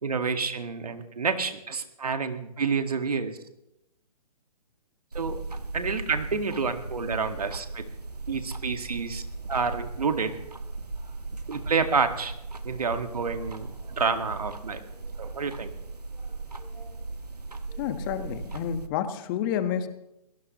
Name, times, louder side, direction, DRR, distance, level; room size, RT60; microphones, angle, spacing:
voice 1, 0.0-3.4 5.1-5.4 5.7-7.9 8.3-9.2 9.5-10.4 11.5-12.3 12.6-14.8 15.2-15.7, right 5 dB, 75° right, 7 dB, 1.9 m, -29 dB
sound 1, 5.1-18.9, right 3 dB, 90° right, 1.5 m, -37 dB
voice 2, 17.8-19.9, left 9 dB, 35° left, 9 dB, 1.4 m, -29 dB
24.0 x 18.0 x 3.1 m, 0.86 s
figure-of-eight pair, 125°, 20 cm